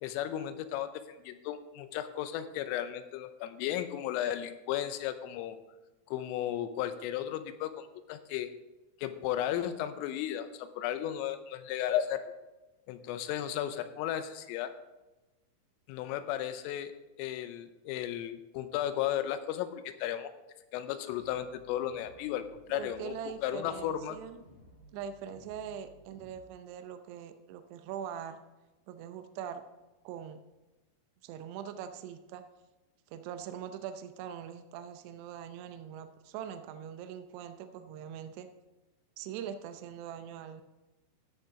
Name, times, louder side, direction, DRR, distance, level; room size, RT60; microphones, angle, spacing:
voice 1, 0.0-5.6 6.1-8.5 9.0-12.3 12.9-14.7 15.9-16.9 17.2-20.3 20.7-23.2 23.4-24.2, left 11 dB, 85° left, 11 dB, 3.3 m, -34 dB
sound 1, 21.1-26.4, equal, 60° left, 5.5 m, -57 dB
voice 2, 22.7-24.4 24.9-28.4 28.9-29.6 30.0-30.4 31.2-32.4 33.1-38.5 39.2-40.6, right 8 dB, 90° right, 9 dB, 2.4 m, -42 dB
13.0 x 6.7 x 4.8 m, 1.1 s
omnidirectional pair, 5.7 m